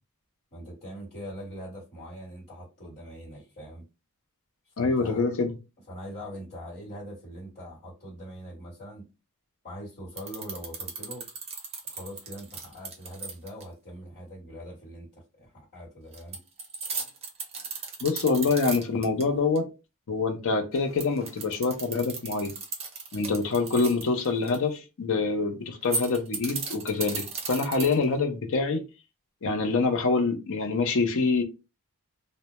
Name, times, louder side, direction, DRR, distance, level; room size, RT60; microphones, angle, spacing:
voice 1, 0.5-3.8 4.7-5.3 5.9-9.0 9.6-11.3 11.8-16.4, equal, 45° left, 1.2 m, -42 dB
voice 2, 4.8-5.5 18.0-19.7 20.1-22.5 23.1-28.8 29.4-31.4, left 4 dB, 65° left, 0.5 m, -26 dB
sound 1, 10.2-13.6 16.1-19.2 19.6-19.7 20.8-24.6 25.8-28.2, right 4 dB, 30° right, 0.6 m, -35 dB
2.1 x 2.0 x 2.8 m
head